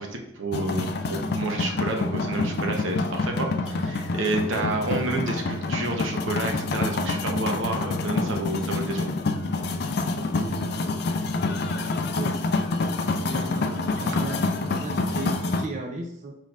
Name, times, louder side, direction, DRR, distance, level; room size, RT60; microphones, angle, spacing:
voice 1, 0.0-9.1, right 2 dB, 80° right, 2 dB, 0.8 m, -30 dB
sound 1, 0.5-15.6, left 3 dB, 55° left, 0.4 m, -27 dB
voice 2, 10.1-10.9 11.6-12.6 13.2-16.4, right 2 dB, 40° right, 1 dB, 0.4 m, -37 dB
4.6 x 4.4 x 2.4 m, 0.78 s
head